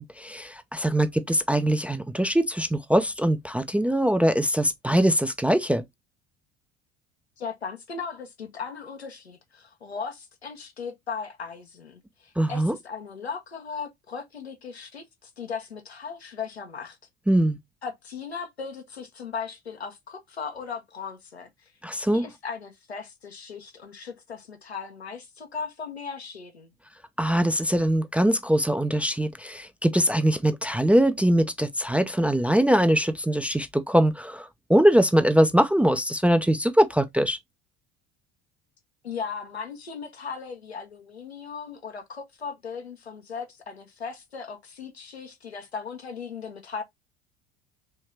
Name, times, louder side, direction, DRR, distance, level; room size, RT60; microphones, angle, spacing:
voice 1, 0.0-5.8 12.4-12.7 17.3-17.6 21.8-22.3 27.2-37.4, right 1 dB, 5° right, 0.4 m, -22 dB
voice 2, 7.4-17.0 17.8-21.5 21.9-26.7 39.0-46.8, left 5 dB, 85° left, 0.9 m, -37 dB
4.4 x 3.1 x 3.1 m
figure-of-eight pair, 60°, 31 cm